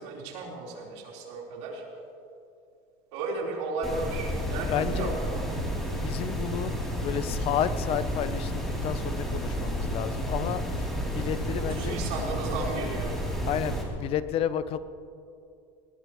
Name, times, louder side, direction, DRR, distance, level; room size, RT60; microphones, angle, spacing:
voice 1, 0.0-1.8 3.1-5.4 11.6-13.2, right 3 dB, 85° right, -2 dB, 4.0 m, -34 dB
sound 1, 3.8-13.8, equal, ahead, 3.1 m, -31 dB
voice 2, 4.7-5.1 5.9-10.9 11.1-12.0 13.5-14.8, left 10 dB, 40° left, 13 dB, 0.7 m, -31 dB
20.5 x 19.5 x 3.1 m, 2.5 s
cardioid pair, 155°, 14 cm